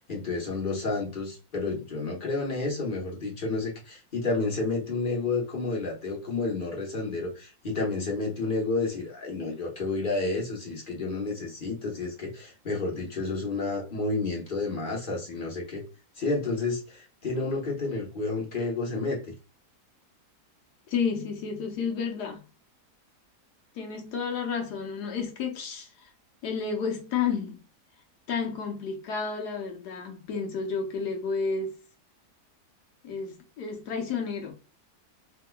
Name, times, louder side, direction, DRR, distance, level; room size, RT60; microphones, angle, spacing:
voice 1, 0.0-15.8 16.2-19.2, left 3 dB, 35° left, 1.1 m, -30 dB
voice 2, 20.9-22.4 23.7-26.1 26.4-27.6 28.3-31.8 33.0-34.5, left 5 dB, 80° left, 1.4 m, -31 dB
3.7 x 2.7 x 2.3 m
omnidirectional pair, 1.7 m